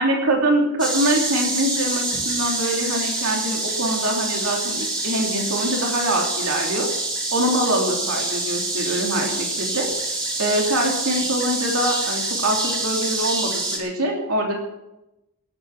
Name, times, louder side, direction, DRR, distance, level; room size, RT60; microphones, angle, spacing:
voice 1, 0.0-6.9 7.3-14.6, right 1 dB, 80° right, 0 dB, 3.0 m, -24 dB
sound 1, 0.8-13.8, right 2 dB, 20° right, 3.3 m, -26 dB
19.5 x 9.2 x 6.0 m, 0.92 s
head